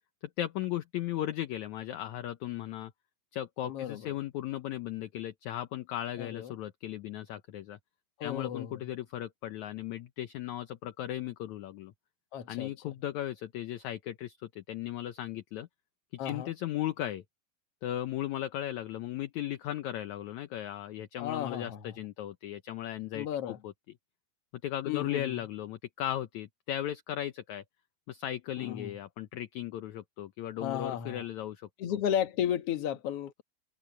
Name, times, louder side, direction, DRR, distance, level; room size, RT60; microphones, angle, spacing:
voice 1, 0.4-2.9 3.3-7.8 8.2-11.9 12.5-15.7 16.2-17.2 17.8-23.7 24.6-27.6 28.1-31.7, left 12 dB, 70° left, 1.8 m, -36 dB
voice 2, 3.6-4.1 6.2-6.5 8.2-8.8 12.3-12.7 16.2-16.5 21.2-21.8 23.1-23.6 24.8-25.4 28.6-28.9 30.6-31.2 31.8-33.4, left 10 dB, 55° left, 1.8 m, -34 dB
omnidirectional pair, 4.3 m